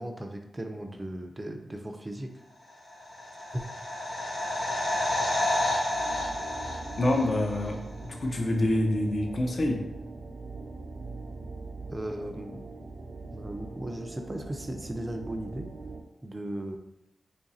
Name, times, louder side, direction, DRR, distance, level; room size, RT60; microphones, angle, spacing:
voice 1, 0.0-2.3 3.5-3.6 11.9-12.6 13.3-15.7 16.2-16.8, right 1 dB, 20° right, 4 dB, 0.4 m, -36 dB
sound 1, 2.9-7.7 8.0-8.1, left 1 dB, 85° left, 1.0 m, -30 dB
sound 2, 5.9-16.0, right 3 dB, 75° right, 0.5 m, -42 dB
voice 2, 7.0-9.8, left 1 dB, 45° left, 2 dB, 0.6 m, -27 dB
3.0 x 2.5 x 4.1 m, 0.87 s
wide cardioid pair, 115°, 0 cm